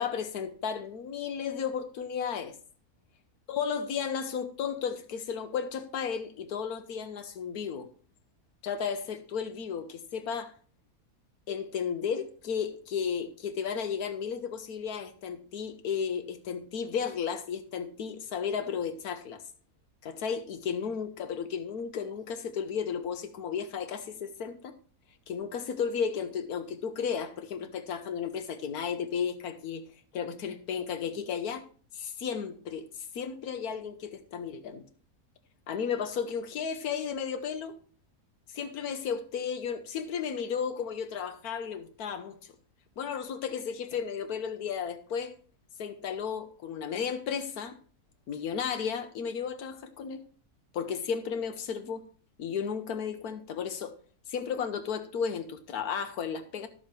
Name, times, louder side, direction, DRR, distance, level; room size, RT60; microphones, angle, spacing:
voice 1, 0.0-2.5 3.5-7.9 8.6-10.5 11.5-19.4 20.0-24.7 25.3-29.8 30.1-31.6 31.9-34.8 35.7-37.7 38.5-42.4 43.0-45.3 45.8-47.8 48.3-50.2 50.7-52.0 52.4-53.9 54.3-56.7, left 7 dB, 70° left, 1.4 m, -34 dB
11.5 x 7.1 x 3.2 m
omnidirectional pair, 1.7 m